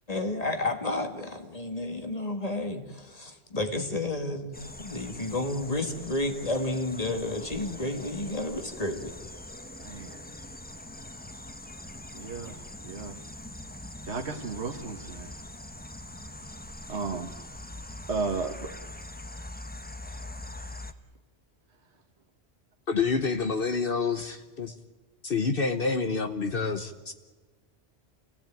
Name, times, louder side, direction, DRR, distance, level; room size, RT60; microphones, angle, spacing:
voice 1, 0.1-9.1, left 2 dB, 35° left, 5 dB, 2.2 m, -31 dB
sound 1, 4.5-20.9, left 1 dB, 10° left, 0.9 m, -43 dB
voice 2, 9.8-10.3 12.1-13.2 14.1-15.3 16.9-17.3 18.1-18.7 19.3-19.4, right 4 dB, 85° right, 4 dB, 1.6 m, -34 dB
voice 3, 22.9-24.7 25.2-27.1, left 4 dB, 60° left, 7 dB, 1.3 m, -28 dB
27.5 x 16.5 x 9.1 m, 1.3 s
omnidirectional pair, 1.1 m